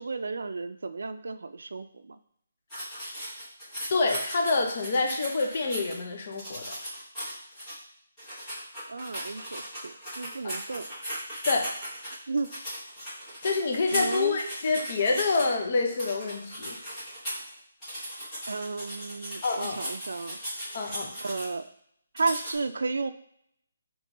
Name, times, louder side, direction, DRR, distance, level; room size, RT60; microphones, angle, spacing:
voice 1, 0.0-2.2 8.9-10.9 12.3-12.5 13.9-14.4 18.5-20.4 21.2-21.7 22.1-23.1, right 3 dB, 70° right, 9 dB, 0.4 m, -33 dB
sound 1, 2.7-5.9 6.3-7.7 8.2-15.4 15.9-17.5 17.8-21.5 22.2-22.5, equal, 10° left, 1.0 m, -37 dB
voice 2, 3.9-6.7 10.4-10.6 11.4-11.7 13.4-16.8 19.4-19.9 20.7-21.1, left 3 dB, 30° left, 2 dB, 0.5 m, -27 dB
3.8 x 3.0 x 3.8 m, 0.69 s
hypercardioid pair, 180°, 0 cm